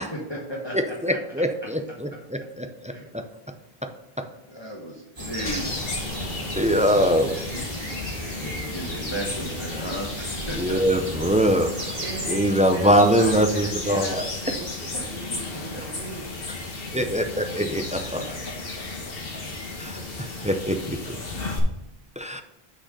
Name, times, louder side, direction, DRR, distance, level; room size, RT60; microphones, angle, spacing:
voice 1, 0.1-1.2 1.6-1.7 2.9-3.1 4.5-5.8 8.4-11.1 11.5-11.6 14.9-15.1 15.5-15.8 18.0-19.4, equal, 25° left, -2 dB, 1.2 m, -36 dB
voice 2, 0.7-3.2 5.4-5.6 6.6-7.4 10.6-11.7 12.3-14.2 16.9-18.2 19.8-20.0 20.4-21.0 22.2-22.4, equal, 10° right, 7 dB, 0.3 m, -23 dB
sound 1, 5.2-12.4, right 1 dB, 35° right, 1.7 m, -35 dB
sound 2, 5.5-21.6, left 3 dB, 65° left, 1.6 m, -34 dB
voice 3, 12.0-16.5, right 3 dB, 60° right, 1 dB, 1.4 m, -38 dB
6.3 x 6.2 x 5.0 m, 0.92 s
omnidirectional pair, 1.0 m